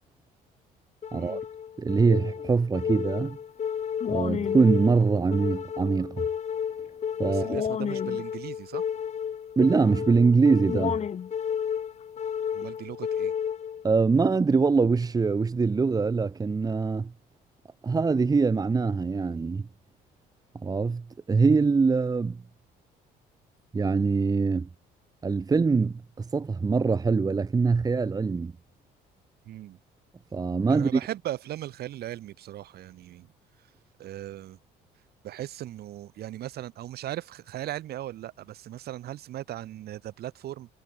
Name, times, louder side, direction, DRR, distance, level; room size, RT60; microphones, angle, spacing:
sound 1, 1.0-14.0, left 8 dB, 40° left, 1.7 m, -32 dB
voice 1, 1.1-1.4 7.3-8.8 12.5-13.3 29.4-29.8 30.7-33.3 34.0-34.6 35.2-40.7, right 13 dB, 70° right, 7.7 m, -38 dB
voice 2, 1.8-3.4 4.1-6.2 7.2-7.7 9.6-11.0 13.8-17.1 17.8-19.7 20.6-22.4 23.7-24.7 25.2-28.5 30.3-31.0, right 4 dB, 20° right, 1.2 m, -23 dB
cardioid pair, 110°, 17 cm